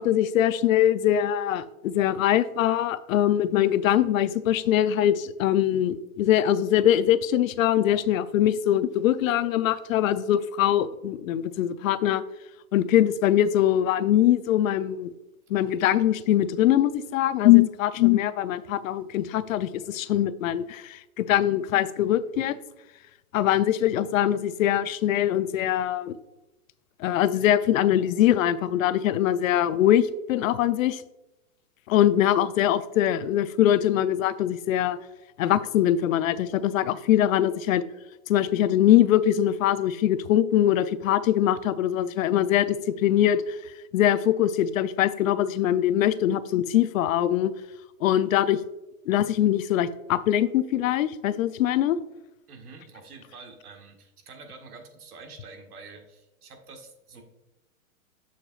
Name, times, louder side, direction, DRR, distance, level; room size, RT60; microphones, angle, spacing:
voice 1, 0.0-12.2 12.7-15.1 15.5-22.6 23.3-26.2 27.0-31.0 31.9-35.0 35.4-37.8 38.3-43.6 43.9-47.5 48.0-48.6 49.1-52.0, left 11 dB, 65° left, 14 dB, 0.6 m, -22 dB
voice 2, 52.5-57.2, right 4 dB, 80° right, 4 dB, 1.8 m, -47 dB
7.5 x 6.8 x 2.4 m, 0.98 s
hypercardioid pair, 140°, 44 cm